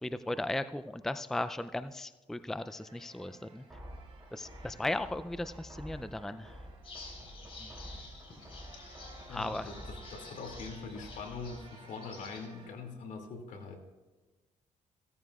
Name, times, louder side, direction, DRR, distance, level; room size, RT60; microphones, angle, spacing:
voice 1, 0.0-3.6 4.3-6.6 7.6-7.7 9.3-9.7, left 1 dB, 5° left, 12 dB, 0.4 m, -36 dB
sound 1, 2.4-12.7, right 2 dB, 45° right, 4.5 m, -57 dB
sound 2, 3.7-11.7, equal, 10° right, 4.0 m, -49 dB
sound 3, 6.8-12.5, left 3 dB, 45° left, 3.6 m, -51 dB
voice 2, 9.3-13.8, left 4 dB, 75° left, 3 dB, 2.4 m, -43 dB
16.0 x 14.0 x 2.4 m, 1.3 s
cardioid pair, 100°, 13 cm